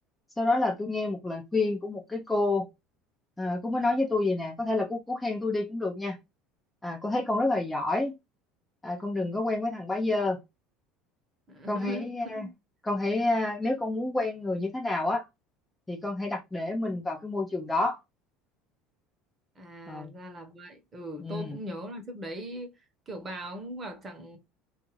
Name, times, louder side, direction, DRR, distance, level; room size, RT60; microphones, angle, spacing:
voice 1, 0.4-2.7 3.4-6.2 6.8-8.1 8.8-10.4 11.7-12.5 12.8-15.3 15.9-18.0 19.9-20.1 21.2-21.6, left 2 dB, 10° left, 0.6 m, -29 dB
voice 2, 11.5-12.1 12.3-12.5 19.6-22.8 23.1-24.4, right 1 dB, 25° right, 0.9 m, -40 dB
2.5 x 2.4 x 3.0 m
supercardioid pair, 115°, 0 cm